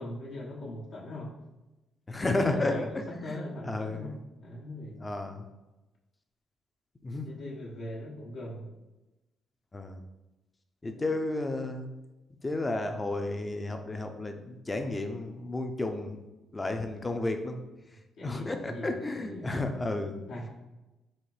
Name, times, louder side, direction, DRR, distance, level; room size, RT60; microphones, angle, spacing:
voice 1, 0.0-1.4 2.2-5.1 7.1-8.7 18.2-19.6 20.3-20.5, left 1 dB, 70° left, -6 dB, 1.1 m, -40 dB
voice 2, 2.1-4.2 5.0-5.5 7.0-7.3 9.7-10.0 10.8-11.9 12.4-16.2 16.5-17.6 18.2-20.2, left 2 dB, 20° left, 6 dB, 0.5 m, -32 dB
4.3 x 2.6 x 4.8 m, 1.0 s
cardioid pair, 90°, 0 cm